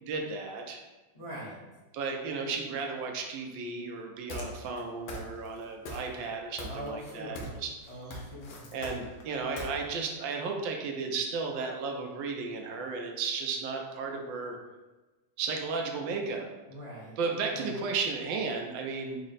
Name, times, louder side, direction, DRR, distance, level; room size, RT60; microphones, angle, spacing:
voice 1, 0.1-0.8 1.9-8.3 8.7-14.6 15.4-16.5 17.2-19.2, right 4 dB, 90° right, 2 dB, 1.4 m, -34 dB
voice 2, 1.1-1.6 6.6-7.5 7.9-8.7 16.7-17.2 17.6-17.7, equal, 30° left, -8 dB, 0.6 m, -42 dB
footsteps boots heavy gravel ext, 4.3-4.8 5.1-5.6 5.9-6.3 6.6-7.6 7.9-9.7, equal, 90° left, 1.4 m, -40 dB
4.3 x 2.1 x 3.9 m, 1.1 s
omnidirectional pair, 2.0 m